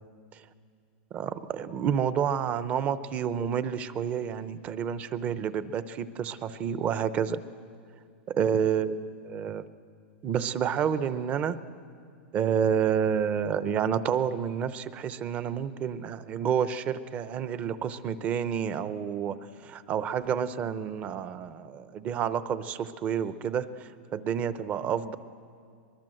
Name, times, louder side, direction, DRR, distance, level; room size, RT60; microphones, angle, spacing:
voice 1, 1.1-7.4 8.4-9.0 9.2-9.6 10.2-11.6 12.3-19.4 19.7-23.7 24.1-25.2, right 8 dB, 25° right, 14 dB, 0.7 m, -29 dB
23.0 x 21.5 x 7.8 m, 2.3 s
supercardioid pair, 160°, 6 cm